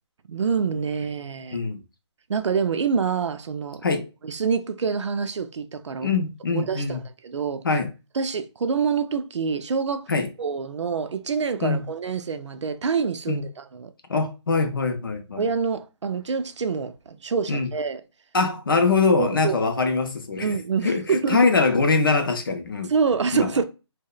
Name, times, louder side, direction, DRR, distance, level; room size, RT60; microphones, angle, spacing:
voice 1, 0.3-1.6 2.3-3.8 4.2-6.1 6.5-7.6 8.2-10.1 10.4-13.9 15.4-18.0 19.2-19.6 20.4-21.4 22.9-23.6, right 5 dB, 80° right, 0.4 m, -26 dB
voice 2, 6.0-7.0 7.6-7.9 10.1-10.3 11.6-11.8 13.3-13.4 14.1-15.5 17.5-17.7 18.3-20.5 20.8-22.9 23.3-23.5, left 4 dB, 50° left, 0.5 m, -23 dB
2.8 x 2.0 x 2.3 m
hypercardioid pair, 175°, 15 cm